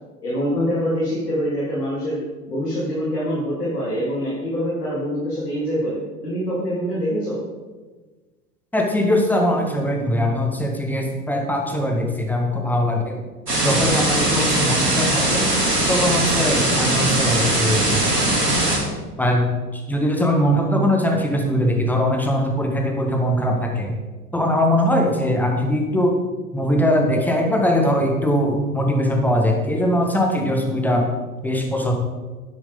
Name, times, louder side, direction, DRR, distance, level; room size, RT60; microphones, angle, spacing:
voice 1, 0.2-2.2 2.5-7.4 20.7-20.8, equal, 85° left, -9 dB, 4.0 m, -25 dB
voice 2, 8.7-13.2 13.6-15.4 15.9-18.0 19.2-19.5 19.9-23.9 24.3-26.2 26.5-31.0 31.4-31.9, equal, 5° left, 1 dB, 1.8 m, -21 dB
sound 1, 13.5-18.8, right 1 dB, 90° right, 2.9 m, -20 dB
12.0 x 9.9 x 4.0 m, 1.3 s
figure-of-eight pair, 90°, 46 cm